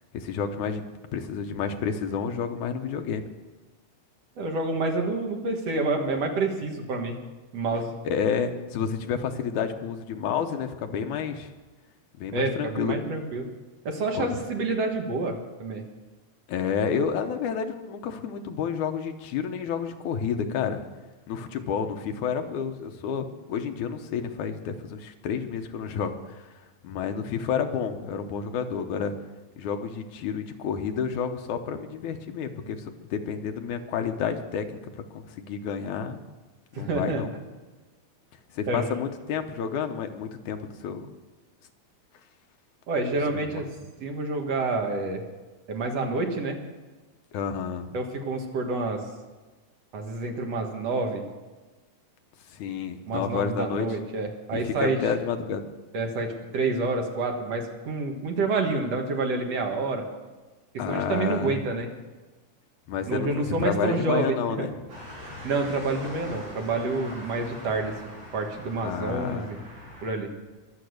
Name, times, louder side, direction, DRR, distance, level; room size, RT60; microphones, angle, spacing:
voice 1, 0.1-0.8 1.1-3.3 8.0-11.5 12.2-13.0 14.1-14.3 16.5-20.8 21.3-26.5 26.8-29.1 29.6-36.2 36.7-37.3 38.5-41.1 43.3-43.6 47.3-47.9 52.5-53.9 54.5-55.6 60.8-61.6 62.9-64.8 68.8-69.5, left 7 dB, 85° left, 6 dB, 2.5 m, -30 dB
voice 2, 4.4-7.2 7.5-7.9 12.3-13.4 13.8-15.8 36.7-37.2 38.7-38.9 42.9-43.7 44.0-45.2 45.7-46.6 47.9-49.0 49.9-51.2 53.1-55.0 55.9-60.1 60.9-61.9 63.1-64.7 65.4-67.9 68.3-69.6 70.0-70.3, right 3 dB, 60° right, 2 dB, 2.7 m, -28 dB
sound 1, 64.9-70.1, equal, 80° right, 6.9 m, -42 dB
23.0 x 7.8 x 6.6 m, 1.2 s
omnidirectional pair, 3.5 m